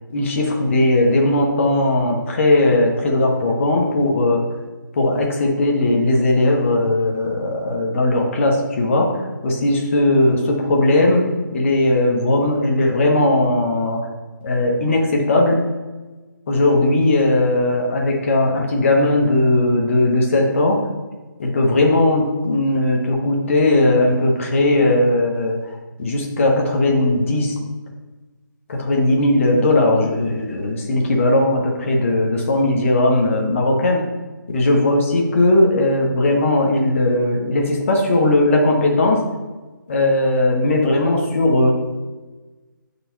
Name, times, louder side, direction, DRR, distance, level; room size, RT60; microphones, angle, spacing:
voice 1, 0.1-4.4 5.0-11.3 11.5-14.0 14.4-15.6 16.5-20.8 21.4-25.6 26.0-27.7 28.7-34.0 34.5-39.2 39.9-41.7, left 2 dB, 35° left, 0 dB, 1.0 m, -18 dB
5.5 x 4.8 x 5.5 m, 1.2 s
figure-of-eight pair, 150°, 11 cm